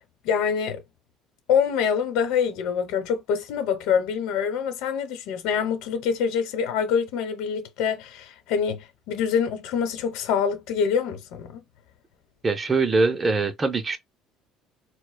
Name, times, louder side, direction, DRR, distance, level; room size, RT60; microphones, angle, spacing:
voice 1, 0.2-0.8 1.5-11.6, left 7 dB, 75° left, 1.0 m, -25 dB
voice 2, 12.4-14.0, right 3 dB, 15° right, 0.6 m, -22 dB
4.6 x 2.1 x 2.2 m
cardioid pair, 155°, 0 cm